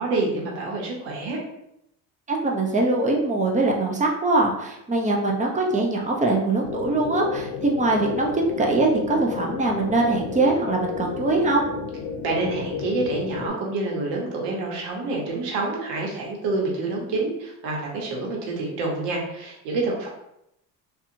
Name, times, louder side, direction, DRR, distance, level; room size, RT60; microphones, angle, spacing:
voice 1, 0.0-1.4 12.2-20.1, right 3 dB, 80° right, -1 dB, 1.0 m, -27 dB
voice 2, 2.3-11.7, right 2 dB, 15° right, 0 dB, 0.5 m, -22 dB
sound 1, 6.6-13.5, left 5 dB, 85° left, 0.6 m, -33 dB
2.7 x 2.4 x 2.5 m, 0.82 s
supercardioid pair, 90°, 44 cm